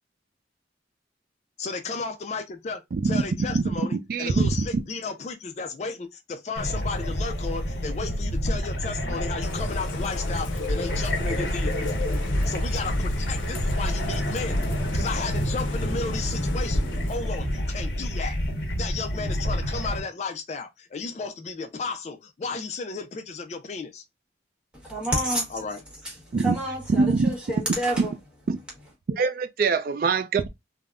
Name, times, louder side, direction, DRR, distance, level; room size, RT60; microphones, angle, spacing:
voice 1, 1.6-11.8 12.5-14.6 14.9-18.4 18.8-24.0 25.5-25.8, left 4 dB, 35° left, 0.3 m, -34 dB
sound 1, 6.6-20.0, equal, 60° left, 0.9 m, -28 dB
Bird / Rain, 9.4-17.6, left 3 dB, 90° left, 0.5 m, -36 dB
voice 2, 24.7-25.5 26.0-28.1, right 1 dB, 5° right, 1.0 m, -29 dB
voice 3, 29.1-30.5, right 4 dB, 50° right, 0.3 m, -23 dB
3.5 x 2.0 x 2.3 m
head